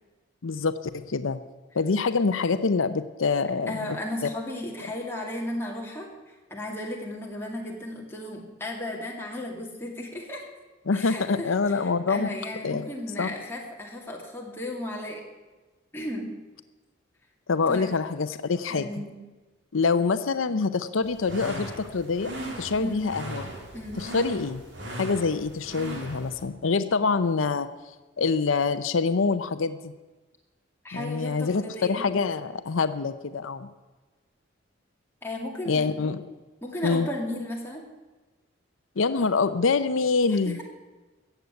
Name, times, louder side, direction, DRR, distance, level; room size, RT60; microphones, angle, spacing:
voice 1, 0.4-1.4 1.7-4.0 10.9-12.3 12.6-12.8 13.2-13.3 17.5-18.9 19.7-22.3 22.6-23.5 24.0-24.6 25.0-27.7 28.2-29.9 30.9-33.7 35.7-36.4 36.8-37.1 39.0-40.6, left 4 dB, 90° left, 11 dB, 0.6 m, -25 dB
voice 2, 3.7-10.4 10.9-11.5 12.1-15.2 15.9-16.3 17.7-17.9 18.7-19.1 22.8-23.1 23.7-24.0 30.8-32.1 35.2-35.8 36.6-37.8 40.4-40.6, left 1 dB, 10° left, -2 dB, 2.4 m, -35 dB
sound 1, 21.0-26.4, right 1 dB, 70° right, 2.8 m, -38 dB
15.0 x 8.1 x 8.2 m, 1.2 s
head